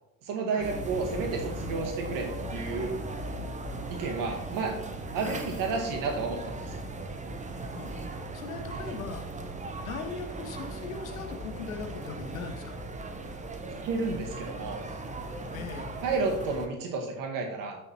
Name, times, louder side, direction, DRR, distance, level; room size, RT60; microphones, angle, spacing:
voice 1, 0.3-3.0 3.9-4.7 5.1-6.8 8.8-9.0 13.8-14.8 16.0-17.8, right 4 dB, 50° right, 2 dB, 1.9 m, -31 dB
sound 1, 0.6-16.7, right 2 dB, 15° right, 1.0 m, -38 dB
voice 2, 7.7-8.1 8.3-9.2 9.8-12.7 15.5-15.9, left 5 dB, 75° left, 6 dB, 1.2 m, -40 dB
13.5 x 6.8 x 3.0 m, 0.91 s
figure-of-eight pair, 60°, 42 cm